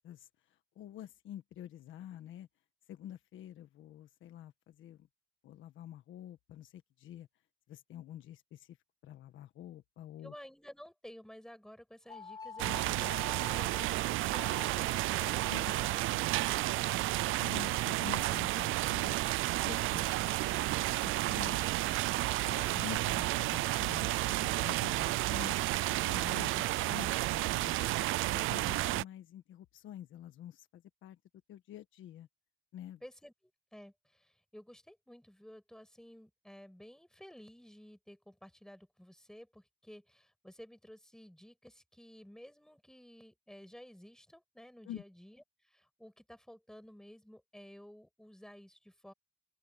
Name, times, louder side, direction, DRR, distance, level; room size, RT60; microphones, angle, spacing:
voice 1, 0.0-2.5 2.9-5.1 5.4-7.3 7.7-8.8 9.0-10.3 12.6-13.1 15.5-15.7 16.0-16.3 17.4-19.2 19.6-21.6 21.9-22.2 22.4-25.8 26.1-27.7 28.3-31.2 31.5-32.3 32.7-33.0 44.8-45.0, left 11 dB, 80° left, 1.5 m, -48 dB
voice 2, 10.2-17.3 33.0-33.3 33.7-49.1, equal, 5° left, 6.7 m, -54 dB
sound 1, 12.1-13.9 14.3-14.7 15.1-15.9, left 5 dB, 20° left, 3.7 m, -46 dB
sound 2, 12.6-29.0, right 17 dB, 85° right, 0.5 m, -32 dB
open air
cardioid pair, 90°, 20 cm